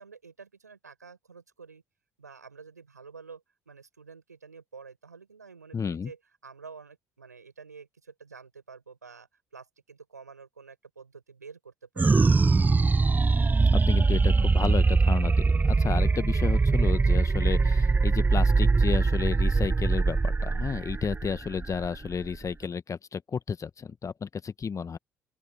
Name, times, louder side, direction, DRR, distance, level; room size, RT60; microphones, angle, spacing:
voice 1, 0.0-1.8 2.2-12.6, right 5 dB, 90° right, 7.5 m, -49 dB
voice 2, 5.7-6.1 13.7-25.0, left 6 dB, 35° left, 1.3 m, -32 dB
sound 1, 12.0-22.6, right 4 dB, 20° right, 0.5 m, -22 dB
open air
figure-of-eight pair, 45°, 9 cm